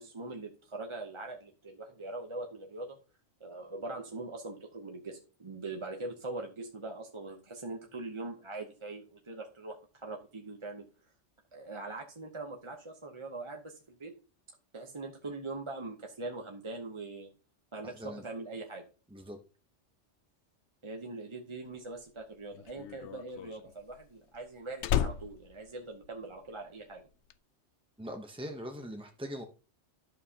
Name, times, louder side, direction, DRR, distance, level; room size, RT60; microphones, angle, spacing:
voice 1, 0.0-3.0 3.4-10.8 11.5-14.1 14.7-17.3 17.7-18.8 20.8-27.1, right 2 dB, 30° right, 2 dB, 0.8 m, -42 dB
voice 2, 17.8-18.2 19.1-19.4 28.0-29.4, equal, 5° right, 3 dB, 0.5 m, -41 dB
Slam, 21.8-26.6 26.9-27.3, left 10 dB, 75° left, 0.9 m, -35 dB
11.0 x 7.3 x 2.8 m, 0.35 s
omnidirectional pair, 1.2 m